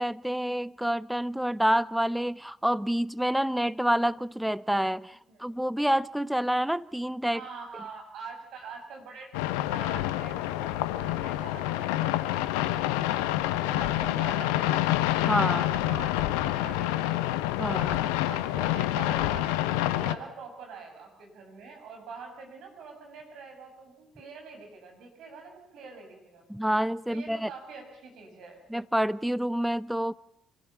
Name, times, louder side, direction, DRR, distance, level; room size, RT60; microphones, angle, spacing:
voice 1, 0.0-7.4 15.2-15.6 17.6-18.1 26.5-27.5 28.7-30.1, equal, 5° right, 0.8 m, -28 dB
voice 2, 7.2-13.2 13.6-14.9 15.5-17.4 18.1-26.5 27.1-28.6, right 4 dB, 65° right, 7.2 m, -45 dB
sound 1, 9.3-20.1, left 14 dB, 75° left, 1.0 m, -27 dB
26.0 x 16.0 x 7.2 m
hypercardioid pair, 50°, 0 cm